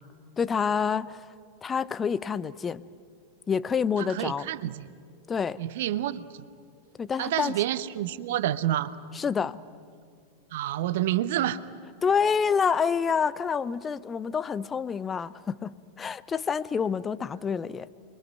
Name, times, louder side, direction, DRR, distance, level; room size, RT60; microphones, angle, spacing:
voice 1, 0.4-1.3 1.6-2.8 3.5-4.5 5.3-5.6 7.0-7.5 9.1-9.6 12.0-17.9, left 6 dB, 20° left, 16 dB, 0.7 m, -27 dB
voice 2, 4.0-4.8 5.6-6.2 7.2-8.9 10.5-11.6, right 13 dB, 55° right, 16 dB, 0.9 m, -28 dB
28.5 x 22.5 x 9.2 m, 2.3 s
figure-of-eight pair, 90°, 0 cm